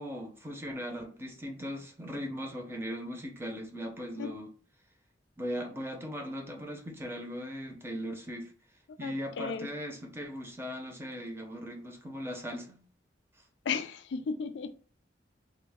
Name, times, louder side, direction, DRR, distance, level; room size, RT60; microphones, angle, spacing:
voice 1, 0.0-4.5 5.4-8.5 9.0-12.8, equal, 15° right, 0.6 m, -38 dB
voice 2, 9.0-9.7 13.7-14.8, left 5 dB, 75° left, 0.3 m, -35 dB
3.0 x 2.0 x 3.4 m
head